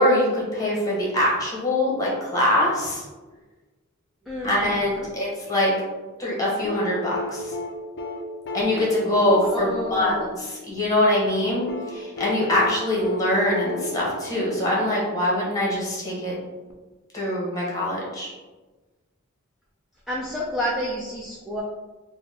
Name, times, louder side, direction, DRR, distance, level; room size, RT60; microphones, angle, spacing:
voice 1, 0.0-3.0 4.4-5.7 6.2-7.5 8.5-16.3 17.1-18.3, left 1 dB, 15° left, -4 dB, 1.0 m, -23 dB
voice 2, 4.3-5.1 9.5-10.3 20.1-21.6, equal, ahead, -6 dB, 0.4 m, -29 dB
sound 1, 6.6-10.7 11.7-15.3 16.7-16.8, left 2 dB, 55° left, 0.5 m, -34 dB
3.9 x 2.2 x 3.4 m, 1.2 s
head